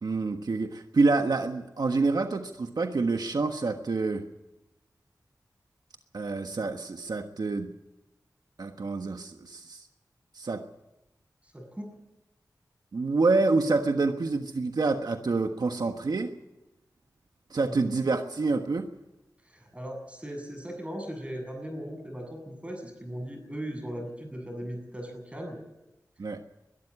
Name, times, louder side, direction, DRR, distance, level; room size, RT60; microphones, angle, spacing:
voice 1, 0.0-4.2 6.1-7.7 8.6-9.9 10.3-10.6 12.9-16.3 17.5-18.9 26.2-26.4, right 3 dB, 75° right, 5 dB, 1.4 m, -27 dB
voice 2, 11.4-12.0 17.6-17.9 19.4-25.6, equal, 20° right, 4 dB, 7.9 m, -38 dB
22.0 x 13.0 x 9.9 m, 0.97 s
wide cardioid pair, 70°, 7 cm